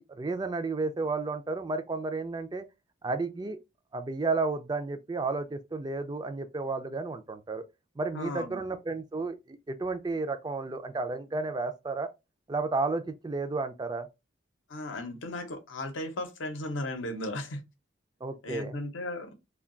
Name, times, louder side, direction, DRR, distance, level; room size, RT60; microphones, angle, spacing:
voice 1, 0.0-2.6 3.0-3.6 3.9-7.6 8.0-12.1 12.5-14.1 18.2-18.8, right 3 dB, 20° right, 0.3 m, -32 dB
voice 2, 8.1-8.6 14.7-17.6 18.4-19.3, left 1 dB, 75° left, 0.7 m, -36 dB
2.2 x 2.2 x 3.6 m
head